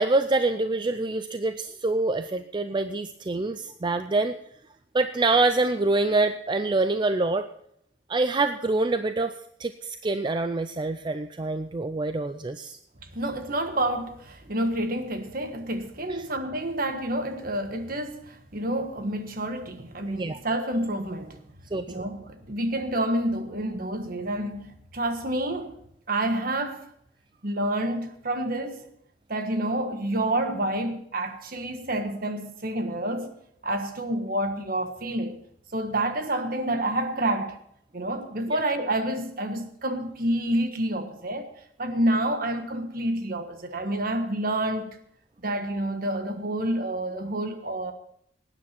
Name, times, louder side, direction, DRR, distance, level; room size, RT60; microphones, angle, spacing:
voice 1, 0.0-4.4 4.9-7.5 8.1-9.3 9.6-12.8 16.2-16.3 20.1-20.4 21.7-22.0 38.5-38.6, right 2 dB, 25° right, 10 dB, 0.4 m, -25 dB
voice 2, 13.0-21.4 21.9-25.8 26.1-26.9 27.4-28.9 29.3-33.3 33.6-35.4 35.7-37.6 37.9-41.5 41.8-45.0 45.4-47.9, right 1 dB, 50° right, 7 dB, 1.4 m, -28 dB
18.5 x 9.8 x 4.4 m, 0.72 s
head